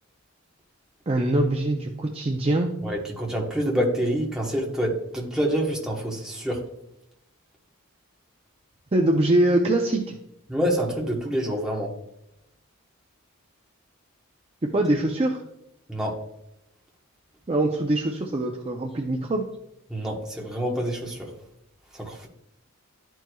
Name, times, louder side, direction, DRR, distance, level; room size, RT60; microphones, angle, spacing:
voice 1, 1.1-2.7 8.9-10.2 14.7-15.4 17.5-19.4, right 1 dB, 25° right, 1 dB, 0.5 m, -23 dB
voice 2, 2.8-6.6 10.5-11.9 15.9-16.2 19.9-21.3 21.9-22.3, equal, 5° right, -2 dB, 1.1 m, -27 dB
12.0 x 4.6 x 2.3 m, 0.83 s
head